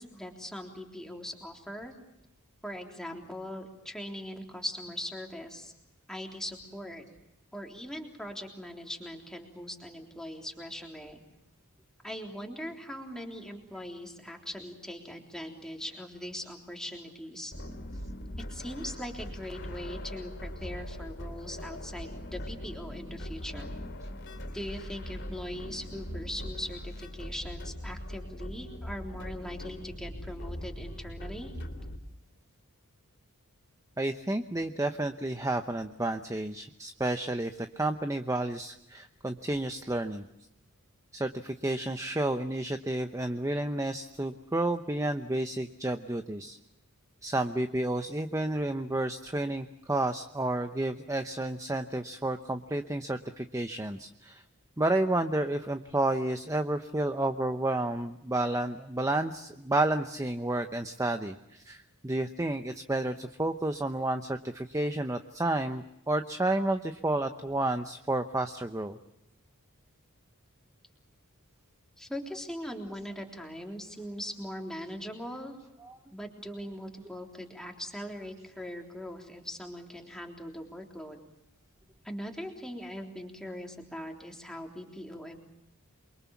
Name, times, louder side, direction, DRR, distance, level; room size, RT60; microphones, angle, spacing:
voice 1, 0.0-1.9 2.6-5.7 6.1-7.0 7.5-11.2 12.0-17.5 18.5-23.7 24.5-31.5 72.0-75.5 76.1-81.2 82.0-85.4, equal, 5° left, 1 dB, 3.6 m, -40 dB
sound 1, 17.5-32.0, equal, 55° left, 3.8 m, -41 dB
voice 2, 34.0-40.2 41.1-46.6 47.2-54.4 54.8-69.0 75.8-75.9, right 2 dB, 15° right, 8 dB, 0.8 m, -31 dB
28.0 x 23.5 x 7.1 m, 0.85 s
head